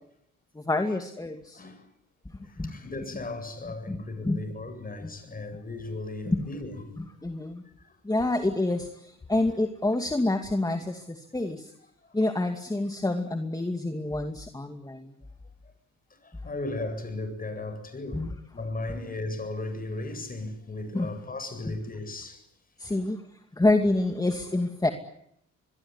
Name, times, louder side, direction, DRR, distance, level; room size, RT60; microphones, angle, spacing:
voice 1, 0.5-1.6 2.6-2.7 3.9-4.0 4.2-4.4 5.0-5.1 6.3-6.5 7.0-7.6 8.0-11.7 12.1-15.1 18.1-18.3 20.9-21.1 21.7-21.8 22.8-23.2 23.5-24.9, left 2 dB, 10° left, 2.5 m, -27 dB
voice 2, 1.5-1.9 2.4-6.8 7.8-8.3 16.2-22.4 22.8-22.9, left 2 dB, 30° left, 8.0 m, -36 dB
25.0 x 22.0 x 9.9 m
cardioid pair, 90°, 30 cm